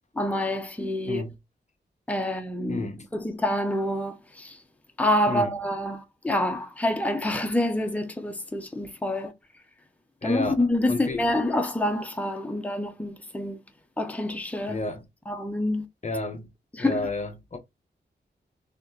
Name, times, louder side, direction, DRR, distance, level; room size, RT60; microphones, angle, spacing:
voice 1, 0.1-1.2 2.1-4.6 5.0-9.3 10.2-13.6 14.0-14.8 15.3-15.9 16.7-17.1, left 1 dB, 10° left, 0.8 m, -27 dB
voice 2, 2.7-3.0 5.3-5.6 10.2-10.5 10.9-11.2 14.7-15.0 16.0-16.5 16.8-17.6, left 2 dB, 40° left, 0.8 m, -31 dB
4.2 x 3.1 x 2.7 m
wide cardioid pair, 125°, 18 cm